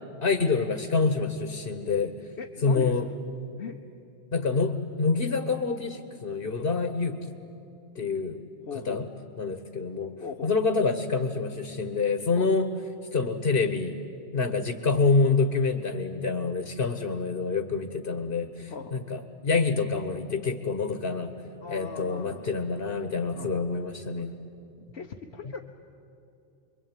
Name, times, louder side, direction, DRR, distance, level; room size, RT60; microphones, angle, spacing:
voice 1, 0.2-2.2 2.6-3.0 4.3-7.3 7.9-8.4 8.9-9.0 9.4-10.1 10.4-12.7 13.1-14.0 14.3-21.3 21.7-24.3, left 4 dB, 65° left, 8 dB, 1.5 m, -27 dB
voice 2, 2.4-3.2 3.6-3.8 8.7-9.1 10.2-10.6 12.4-12.5 14.5-14.6 18.7-19.0 21.6-22.5 23.3-23.5 24.1-24.3 24.8-25.6, left 5 dB, 90° left, 2 dB, 1.3 m, -39 dB
29.0 x 22.5 x 9.2 m, 2.8 s
omnidirectional pair, 1.1 m